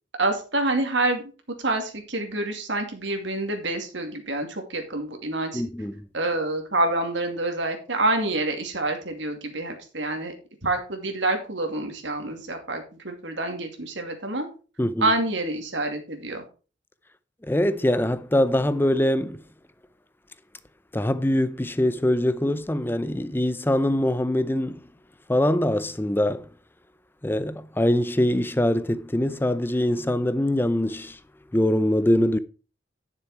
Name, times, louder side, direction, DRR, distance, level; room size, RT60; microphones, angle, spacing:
voice 1, 0.2-1.2 1.6-5.6 6.1-10.3 10.6-14.5 15.0-16.4, right 2 dB, 75° right, 2.4 m, -27 dB
voice 2, 5.5-6.0 14.8-15.1 17.4-19.4 20.9-24.8 25.3-26.4 27.2-31.2 31.5-32.4, left 1 dB, 10° left, 0.5 m, -23 dB
10.0 x 6.9 x 4.7 m
head